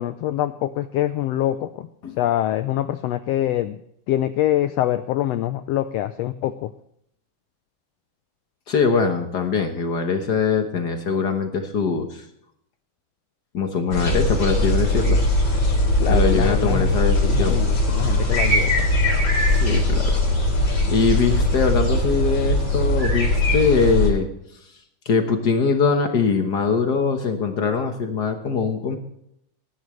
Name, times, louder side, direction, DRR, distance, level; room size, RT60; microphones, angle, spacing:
voice 1, 0.0-1.9 2.2-3.8 4.1-6.7 16.0-16.9 17.3-18.7, left 13 dB, 85° left, 12 dB, 1.4 m, -24 dB
voice 2, 8.7-12.2 13.5-15.2 16.1-17.6 19.5-20.2 20.9-24.3 25.0-29.0, left 5 dB, 55° left, 6 dB, 1.1 m, -22 dB
sound 1, 13.9-24.1, left 1 dB, 40° left, 4.5 m, -20 dB
18.0 x 10.5 x 3.2 m, 0.74 s
omnidirectional pair, 3.4 m